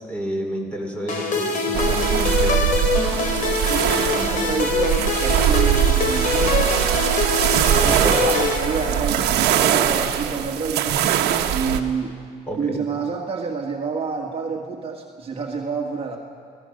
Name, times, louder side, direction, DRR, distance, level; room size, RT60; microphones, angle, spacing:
voice 1, 0.0-2.8 3.8-4.4 8.0-8.2 12.5-12.8, equal, 10° left, 1 dB, 4.5 m, -30 dB
sound 1, 1.1-9.4, left 3 dB, 50° left, 3.4 m, -24 dB
sound 2, 1.7-11.8, right 10 dB, 80° right, 1.4 m, -21 dB
voice 2, 3.7-6.8 7.8-12.2 12.6-16.2, right 5 dB, 35° right, 0 dB, 1.9 m, -28 dB
29.0 x 17.5 x 6.6 m, 2.2 s
cardioid pair, 110°, 17 cm